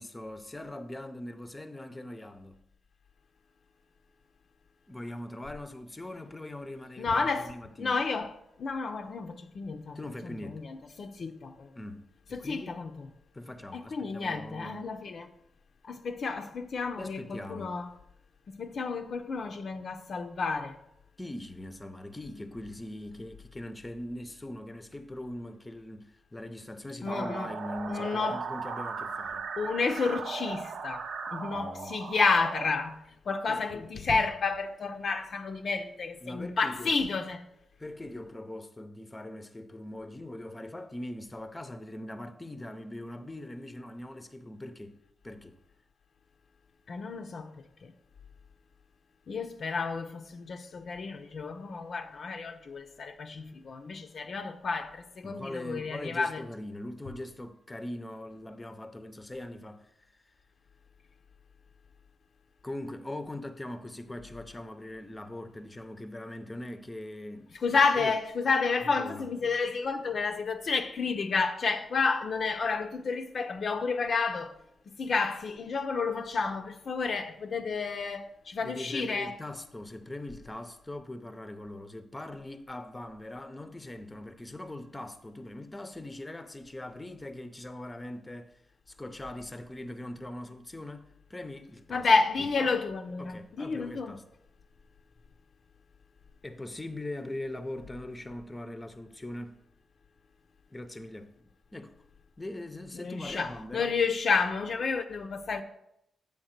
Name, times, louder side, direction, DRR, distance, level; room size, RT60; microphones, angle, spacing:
voice 1, 0.0-2.6 4.9-8.0 9.9-10.6 11.8-12.8 13.3-14.9 17.0-17.7 21.2-29.5 31.5-32.0 33.5-33.9 36.2-37.0 37.8-45.0 45.2-45.6 55.2-59.9 62.6-67.6 67.8-68.2 68.8-69.3 78.6-88.6 88.9-92.1 92.6-92.7 93.2-94.2 96.4-99.7 100.7-101.9 102.4-103.9, left 1 dB, 20° left, 0.6 m, -41 dB
voice 2, 7.0-7.5 7.8-8.3 8.6-11.7 12.3-13.0 13.7-15.3 15.9-17.9 18.5-20.7 27.0-27.5 27.9-28.4 29.6-31.1 31.3-33.0 33.3-37.4 46.9-47.5 47.8-47.9 49.3-56.4 67.6-74.5 75.0-79.4 91.9-94.2 102.9-105.6, left 4 dB, 60° left, 0.5 m, -30 dB
sound 1, 27.1-32.7, right 5 dB, 75° right, 0.7 m, -37 dB
7.8 x 3.5 x 6.5 m
cardioid pair, 75°, 0 cm